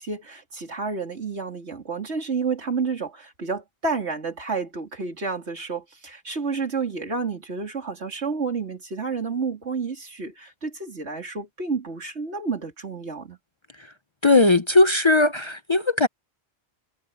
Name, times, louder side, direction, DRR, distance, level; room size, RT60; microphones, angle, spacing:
voice 1, 0.0-13.4, right 4 dB, 90° right, 3.5 m, -30 dB
voice 2, 14.2-16.1, left 2 dB, 30° left, 0.6 m, -18 dB
omnidirectional pair, 1.1 m